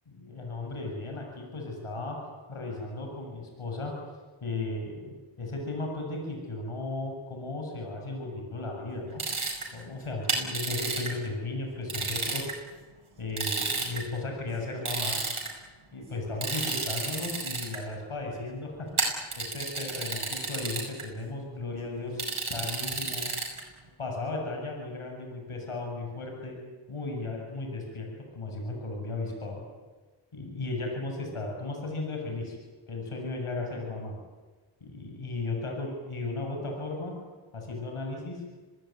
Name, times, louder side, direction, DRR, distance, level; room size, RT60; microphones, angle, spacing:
voice 1, 0.1-2.2 2.5-3.9 4.4-9.2 9.7-12.5 13.2-15.2 15.9-18.9 19.4-23.3 24.0-26.6 26.9-28.1 28.3-29.6 30.3-32.6 32.9-34.1 34.8-37.1 37.5-38.4, left 2 dB, 75° left, 1 dB, 7.9 m, -35 dB
sound 1, 9.2-9.6 10.3-11.1 11.9-12.5 13.4-14.0 14.9-15.5 16.4-17.8 19.0-21.0 22.2-23.6, right 4 dB, 75° right, 7.5 m, -31 dB
27.5 x 19.5 x 9.5 m, 1.3 s
cardioid pair, 45°, 50 cm